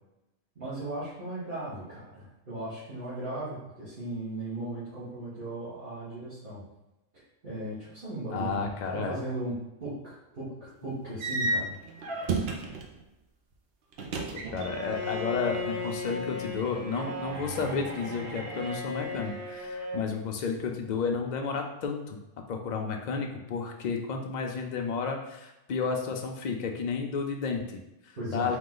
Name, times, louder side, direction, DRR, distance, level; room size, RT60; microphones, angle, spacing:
voice 1, 0.5-6.6 7.1-8.6 8.8-12.3 28.2-28.6, right 1 dB, 40° right, -12 dB, 1.6 m, -37 dB
voice 2, 8.3-9.2 12.7-12.8 14.3-22.2 22.5-28.6, left 5 dB, 65° left, 2 dB, 0.4 m, -32 dB
sound 1, 11.2-13.0 13.9-15.0 15.3-16.1, right 3 dB, 55° right, 0.8 m, -32 dB
Bowed string instrument, 14.5-20.1, left 1 dB, 85° right, 1.3 m, -36 dB
3.8 x 3.1 x 3.8 m, 0.97 s
omnidirectional pair, 1.4 m